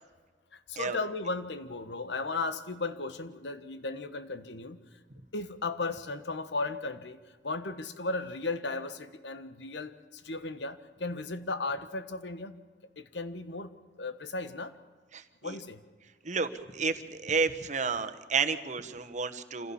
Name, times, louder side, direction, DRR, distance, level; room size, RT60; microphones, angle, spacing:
voice 1, 0.5-4.8 5.3-12.6 13.0-14.7 15.4-15.8, left 3 dB, 85° left, 11 dB, 1.4 m, -36 dB
voice 2, 15.1-15.6 16.2-19.7, right 5 dB, 45° right, 8 dB, 1.4 m, -31 dB
26.5 x 16.0 x 7.2 m, 1.4 s
head